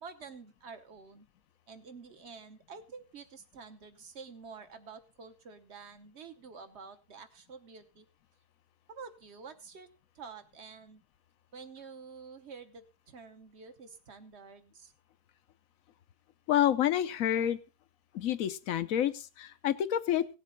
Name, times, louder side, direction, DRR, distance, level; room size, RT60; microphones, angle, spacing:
voice 1, 0.0-1.3 1.7-8.1 8.9-9.9 10.1-11.0 11.5-14.9, right 5 dB, 45° right, 9 dB, 1.3 m, -49 dB
voice 2, 16.5-17.6 18.1-20.3, left 10 dB, 65° left, 14 dB, 1.1 m, -28 dB
17.0 x 7.5 x 3.8 m, 0.33 s
omnidirectional pair, 1.7 m